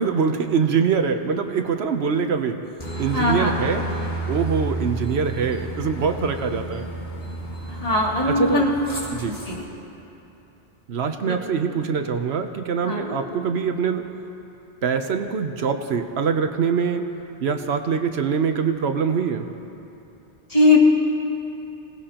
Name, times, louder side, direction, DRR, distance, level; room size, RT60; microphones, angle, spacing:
voice 1, 0.0-2.6 3.0-3.9 4.3-6.8 8.3-8.7 9.1-9.4 10.9-14.0 14.8-17.1 17.4-19.5, right 6 dB, 75° right, 6 dB, 1.0 m, -23 dB
Aircraft, 2.8-9.6, right 1 dB, 65° left, 3.8 m, -31 dB
voice 2, 3.1-3.5 7.8-8.7 9.2-9.6 11.2-11.4 12.8-13.2 20.5-20.8, left 2 dB, 35° left, -5 dB, 2.7 m, -20 dB
26.5 x 18.0 x 2.9 m, 2.9 s
omnidirectional pair, 1.1 m